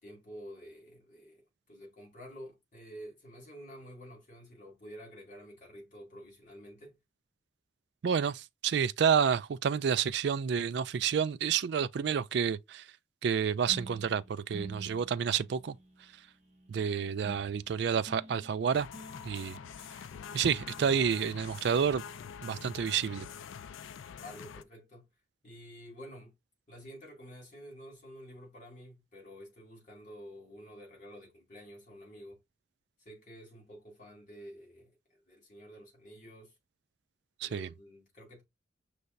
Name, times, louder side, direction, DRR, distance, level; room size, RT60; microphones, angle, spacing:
voice 1, 0.0-7.0 24.2-25.1 25.4-26.3 26.7-32.4 33.0-36.5 37.4-38.4, equal, 40° left, 2.3 m, -50 dB
voice 2, 8.0-12.9 13.2-15.8 16.7-18.9 19.2-19.6 20.3-22.0 22.4-23.3 37.4-37.7, right 7 dB, 60° right, 0.3 m, -29 dB
sound 1, 13.7-21.2, right 1 dB, 35° right, 1.1 m, -51 dB
sound 2, 18.7-24.6, left 7 dB, 85° left, 0.4 m, -45 dB
5.6 x 3.3 x 2.6 m
head